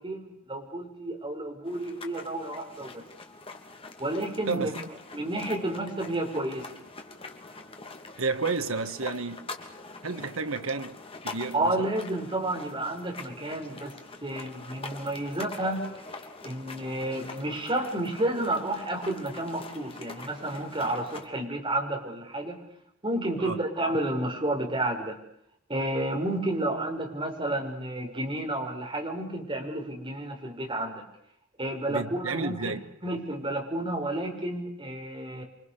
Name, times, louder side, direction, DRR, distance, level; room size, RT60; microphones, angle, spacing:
voice 1, 0.0-3.0 4.0-4.7 5.1-6.7 11.5-15.9 16.4-22.6 23.0-25.2 25.7-31.0 31.6-35.4, right 1 dB, 25° right, 6.2 m, -31 dB
sound 1, 1.7-21.3, left 3 dB, 25° left, 3.0 m, -44 dB
voice 2, 4.5-4.8 8.2-9.4 10.0-11.0 11.2-11.9 23.4-23.6 31.9-32.9, right 4 dB, 70° right, 1.7 m, -31 dB
30.0 x 25.0 x 6.9 m
head